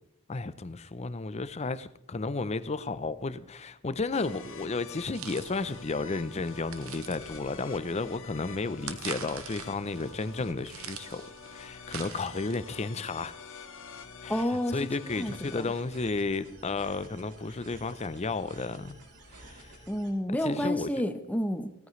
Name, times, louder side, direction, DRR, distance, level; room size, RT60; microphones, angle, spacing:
voice 1, 0.3-13.3 14.2-19.0 19.4-19.8 20.4-20.9, left 3 dB, 30° left, 0.6 m, -33 dB
sound 1, 4.1-15.8, left 5 dB, 65° left, 1.2 m, -47 dB
sound 2, 5.1-12.8, right 8 dB, 70° right, 1.0 m, -45 dB
voice 2, 14.3-15.7 19.9-21.7, equal, 5° left, 0.8 m, -30 dB
sound 3, 15.1-20.1, right 2 dB, 90° right, 3.3 m, -51 dB
17.0 x 14.0 x 3.2 m
head